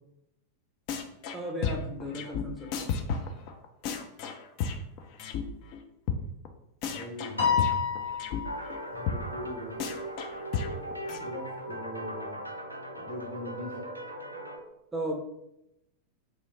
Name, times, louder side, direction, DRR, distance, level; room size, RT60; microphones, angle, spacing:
sound 1, 0.9-1.4 1.6-5.4 5.7-5.8 6.1-6.2 6.5-6.6 6.8-8.4 8.7-8.8 9.1-9.2 9.4-9.5 9.8-11.2, left 6 dB, 45° left, 0.4 m, -33 dB
voice 1, 1.3-2.9 14.9-15.1, right 1 dB, 10° right, 1 dB, 0.5 m, -35 dB
voice 2, 6.8-7.5 8.9-9.8 11.2-12.4 12.9-13.9, left 1 dB, 60° left, 0 dB, 0.9 m, -40 dB
Piano, 7.4-8.9, left 7 dB, 85° left, 0.9 m, -28 dB
sound 2, 8.4-14.6, right 1 dB, 85° right, 0.4 m, -39 dB
3.0 x 2.2 x 3.6 m, 0.83 s
figure-of-eight pair, 90°, 0 cm